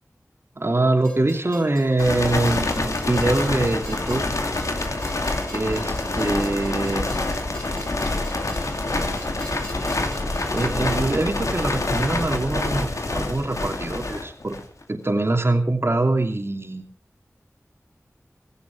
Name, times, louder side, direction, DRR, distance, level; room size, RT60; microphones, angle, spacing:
voice 1, 0.6-4.2 5.5-7.1 10.5-14.6 14.9-16.9, right 2 dB, 50° right, 4 dB, 2.8 m, -23 dB
Train, 1.0-10.7, equal, 15° left, 3.8 m, -45 dB
sound 1, 2.0-14.8, left 2 dB, 85° left, 2.3 m, -26 dB
Singing / Musical instrument, 2.2-13.4, right 3 dB, 90° right, 2.5 m, -43 dB
17.0 x 16.0 x 4.6 m, 0.43 s
wide cardioid pair, 45°, 5 cm